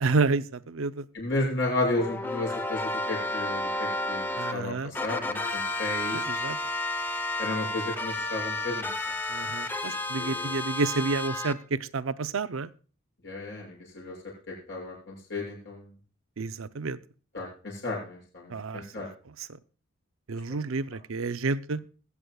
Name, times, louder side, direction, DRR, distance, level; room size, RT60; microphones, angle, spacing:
voice 1, 0.0-1.0 4.4-4.9 6.1-6.6 9.3-12.7 16.4-17.0 18.5-18.8 19.4-19.5 20.3-21.8, right 4 dB, 75° right, 13 dB, 0.6 m, -29 dB
voice 2, 1.1-6.2 7.4-8.9 10.2-10.5 13.2-14.1 14.5-15.9 17.3-19.1, left 2 dB, 55° left, -3 dB, 6.9 m, -33 dB
sound 1, 2.0-4.5 4.9-11.5, left 2 dB, 10° left, 0.7 m, -31 dB
21.5 x 8.3 x 2.3 m, 0.38 s
head